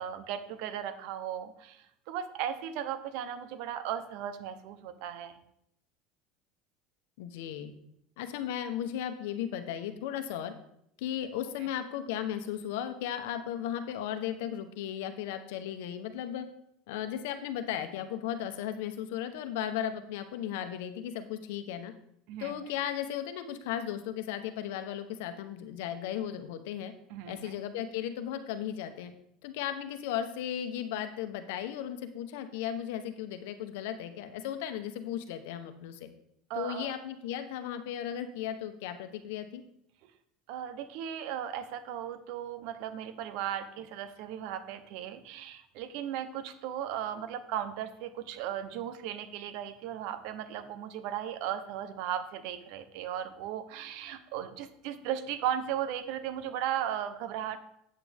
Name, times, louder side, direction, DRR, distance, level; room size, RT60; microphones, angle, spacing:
voice 1, 0.0-5.4 22.3-22.5 27.1-27.5 36.5-36.9 40.5-57.6, right 10 dB, 70° right, 11 dB, 0.8 m, -36 dB
voice 2, 7.2-7.7 8.2-10.5 11.0-16.5 16.9-21.9 22.4-26.9 27.3-29.1 29.4-36.1 36.5-39.6, left 10 dB, 80° left, 9 dB, 1.0 m, -36 dB
8.6 x 8.6 x 3.5 m, 0.74 s
supercardioid pair, 120°, 0 cm